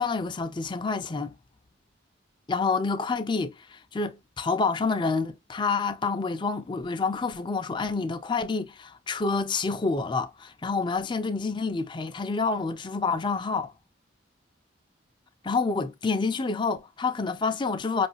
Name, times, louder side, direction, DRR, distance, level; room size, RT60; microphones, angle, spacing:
voice 1, 0.0-1.4 2.5-13.7 15.4-18.1, left 4 dB, 25° left, 0.4 m, -28 dB
5.2 x 2.4 x 2.8 m
head